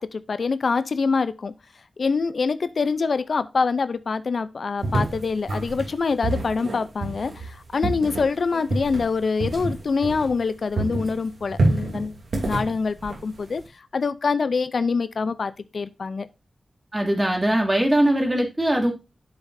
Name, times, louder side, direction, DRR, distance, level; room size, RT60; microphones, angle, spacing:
voice 1, 0.0-1.5 2.0-12.2 12.4-16.3, left 4 dB, 65° left, 0.5 m, -25 dB
sound 1, 4.8-10.5 10.8-13.7, right 2 dB, 85° right, 2.8 m, -28 dB
voice 2, 16.9-18.9, right 1 dB, 15° right, 2.6 m, -21 dB
9.6 x 7.3 x 2.6 m
wide cardioid pair, 105°, 0 cm